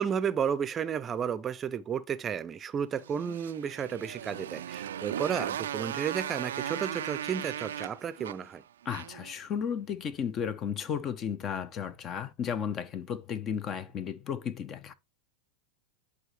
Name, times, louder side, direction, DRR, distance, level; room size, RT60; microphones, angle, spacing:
voice 1, 0.0-8.6, right 7 dB, 25° right, 0.6 m, -32 dB
Motorcycle, 3.0-9.3, right 10 dB, 85° right, 0.4 m, -37 dB
voice 2, 8.8-14.9, left 7 dB, 35° left, 0.9 m, -34 dB
11.0 x 4.2 x 3.3 m
hypercardioid pair, 115°, 0 cm